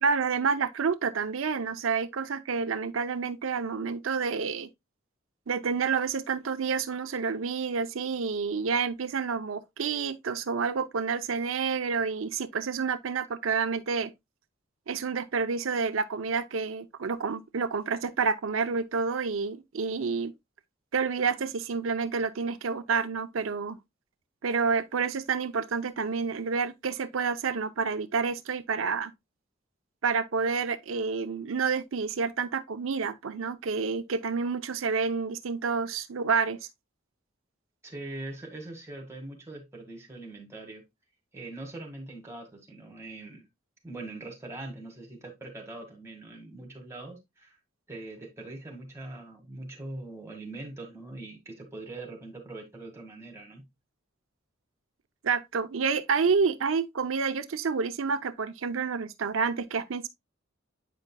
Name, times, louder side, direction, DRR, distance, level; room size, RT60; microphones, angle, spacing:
voice 1, 0.0-4.7 5.5-14.1 14.9-20.3 20.9-23.8 24.4-29.1 30.0-36.6 55.2-60.1, right 5 dB, 90° right, 0.6 m, -29 dB
voice 2, 37.8-40.8 41.3-43.5 43.8-47.5 47.9-53.6, right 2 dB, 15° right, 1.8 m, -42 dB
8.5 x 5.2 x 2.2 m
head